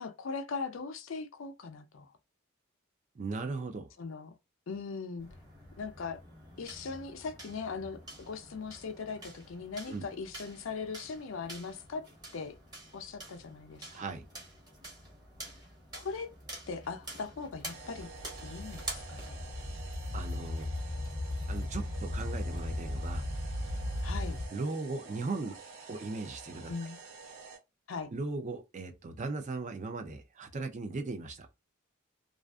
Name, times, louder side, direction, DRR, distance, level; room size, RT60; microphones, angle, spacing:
voice 1, 0.0-2.1 4.0-4.3 4.7-5.3 5.8-6.2 6.6-12.0 12.3-12.6 12.9-14.1 15.9-16.3 16.7-18.1 18.4-19.4 24.0-24.4 26.7-27.0 27.9-28.1, left 4 dB, 65° left, 0.5 m, -39 dB
voice 2, 3.2-3.9 9.9-10.0 13.9-14.2 20.1-20.7 21.5-23.2 24.5-25.5 25.9-26.7 28.1-31.5, right 3 dB, 35° right, 0.4 m, -37 dB
sound 1, 5.2-20.0, right 1 dB, 20° right, 0.9 m, -48 dB
sound 2, 17.7-24.5, left 1 dB, 20° left, 0.6 m, -36 dB
sound 3, 17.7-27.6, right 4 dB, 65° right, 0.7 m, -50 dB
2.4 x 2.4 x 2.3 m
head